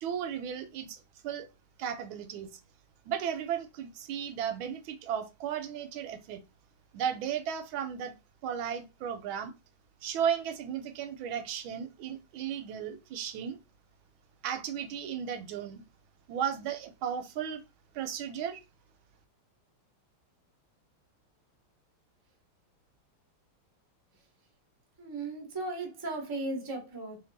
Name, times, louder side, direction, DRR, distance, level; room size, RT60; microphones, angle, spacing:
voice 1, 0.0-1.5 1.8-2.6 3.0-6.4 6.9-8.1 8.4-9.5 10.0-13.6 14.4-15.8 16.3-17.6 17.9-18.6, right 8 dB, 75° right, 1.3 m, -35 dB
voice 2, 25.0-27.2, right 2 dB, 20° right, 0.5 m, -36 dB
3.1 x 2.9 x 4.0 m
omnidirectional pair, 2.4 m